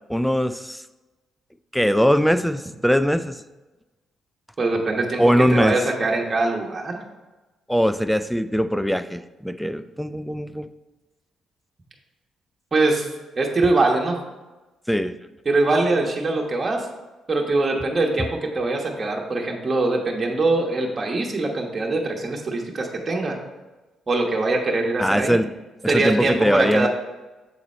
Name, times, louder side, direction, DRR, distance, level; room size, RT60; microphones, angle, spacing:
voice 1, 0.1-0.8 1.7-3.4 5.2-5.8 7.7-10.7 14.9-15.2 25.0-25.5 25.8-26.9, equal, ahead, 12 dB, 0.3 m, -21 dB
voice 2, 4.6-7.0 12.7-13.1 13.4-14.2 15.4-16.9 17.3-23.4 24.1-25.4 25.9-26.9, right 2 dB, 30° right, 0 dB, 1.2 m, -22 dB
7.4 x 3.9 x 4.3 m, 1.1 s
cardioid pair, 90°, 0 cm